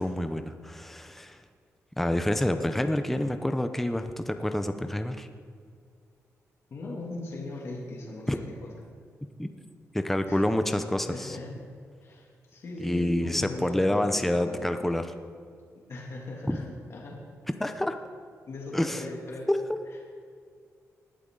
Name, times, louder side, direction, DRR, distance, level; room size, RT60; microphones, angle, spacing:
voice 1, 0.0-1.4 2.0-5.3 8.3-8.4 9.4-9.5 9.9-11.4 12.8-15.1 16.5-16.6 17.6-18.0 18.7-19.0 19.5-19.6, left 1 dB, 5° left, 8 dB, 0.6 m, -27 dB
voice 2, 6.7-8.7 10.3-10.4 11.1-11.5 12.0-14.9 15.9-17.2 18.5-19.5, left 2 dB, 50° left, -2 dB, 2.4 m, -39 dB
19.5 x 12.0 x 3.8 m, 2.2 s
wide cardioid pair, 165°, 6 cm